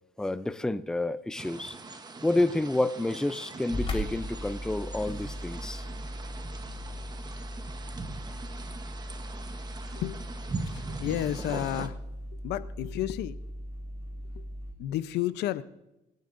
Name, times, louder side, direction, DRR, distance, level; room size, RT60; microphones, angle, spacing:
voice 1, 0.2-1.8 2.2-5.9, left 2 dB, 5° left, 0.4 m, -29 dB
sound 1, 1.4-11.9, right 3 dB, 25° right, 1.0 m, -41 dB
sound 2, 3.7-14.7, equal, 35° left, 2.8 m, -38 dB
voice 2, 9.9-10.3 10.6-12.0 12.4-13.4 14.3-14.4 14.8-15.6, left 13 dB, 80° left, 0.6 m, -32 dB
25.5 x 9.3 x 2.6 m
cardioid pair, 110°, 17 cm